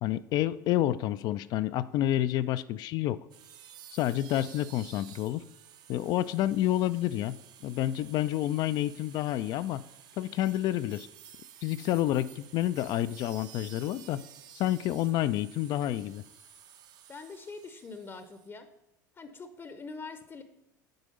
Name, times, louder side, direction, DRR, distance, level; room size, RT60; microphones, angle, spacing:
voice 1, 0.0-3.2 3.9-5.4 5.9-7.4 7.6-9.8 10.2-11.1 11.6-14.2 14.5-16.2, left 13 dB, 40° left, 14 dB, 0.3 m, -29 dB
sound 1, 3.3-18.5, right 10 dB, 40° right, 0.6 m, -53 dB
voice 2, 17.1-18.7 19.1-20.4, left 4 dB, 25° left, 9 dB, 0.7 m, -44 dB
7.8 x 4.8 x 5.2 m, 0.85 s
figure-of-eight pair, 70°, 10 cm